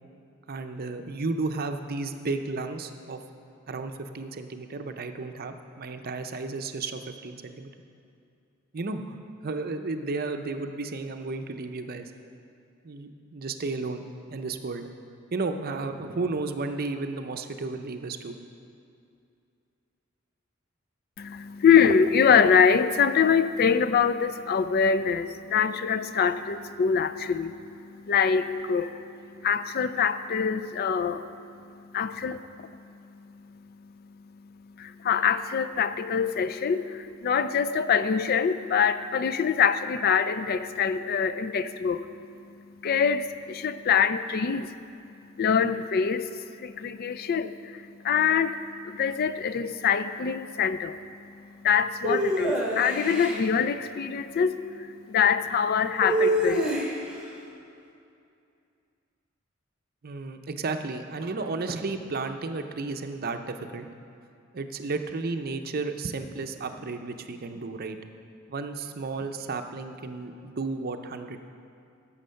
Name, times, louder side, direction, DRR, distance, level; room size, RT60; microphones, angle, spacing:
voice 1, 0.5-3.2 3.7-7.7 8.7-9.2 9.4-12.1 12.8-14.0 14.3-14.8 15.3-18.4 60.0-63.9 64.5-68.0 68.5-71.4, right 3 dB, 45° right, 7 dB, 0.6 m, -33 dB
voice 2, 21.2-56.8, left 6 dB, 50° left, 12 dB, 0.4 m, -25 dB
sound 1, 52.0-53.4 56.0-57.2, right 1 dB, 5° right, 1.4 m, -26 dB
11.5 x 7.2 x 5.6 m, 2.5 s
head